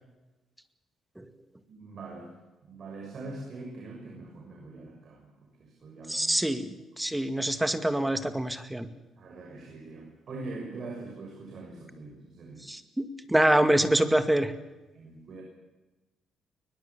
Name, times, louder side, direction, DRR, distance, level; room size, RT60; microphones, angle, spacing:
voice 1, 1.7-2.3 2.6-5.3 5.6-6.4 9.2-12.6 14.9-15.4, right 3 dB, 55° right, 0 dB, 6.3 m, -43 dB
voice 2, 6.1-8.9 12.7-14.5, right 1 dB, 10° right, 10 dB, 2.0 m, -25 dB
22.0 x 21.0 x 7.3 m, 1.1 s
cardioid pair, 90°, 0 cm